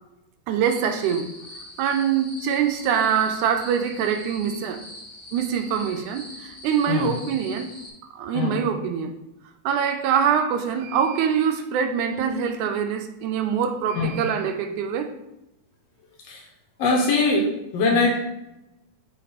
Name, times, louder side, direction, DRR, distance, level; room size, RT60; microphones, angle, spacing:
voice 1, 0.5-1.3 1.8-4.8 5.3-7.7 8.1-9.1 9.7-15.1, right 8 dB, 85° right, 7 dB, 2.1 m, -24 dB
sound 1, 0.6-7.9, left 1 dB, 40° left, 2.7 m, -42 dB
voice 2, 8.3-8.6 13.9-14.1 16.2-16.5 16.8-18.2, left 3 dB, 70° left, 0 dB, 1.8 m, -22 dB
5.6 x 4.2 x 4.1 m, 0.91 s
omnidirectional pair, 3.5 m